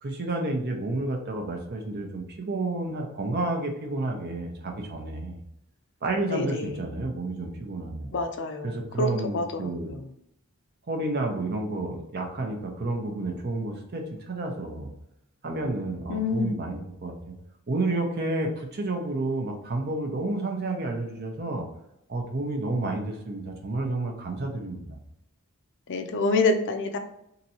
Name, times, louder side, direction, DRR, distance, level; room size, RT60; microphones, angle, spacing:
voice 1, 0.0-5.4 6.0-8.1 8.6-9.9 10.9-14.9 15.4-17.3 17.7-21.7 22.1-25.0, right 2 dB, 50° right, 2 dB, 0.8 m, -30 dB
voice 2, 6.3-6.8 8.1-10.1 16.1-16.5 25.9-27.0, left 3 dB, 60° left, 5 dB, 0.5 m, -27 dB
2.9 x 2.7 x 4.1 m, 0.80 s
head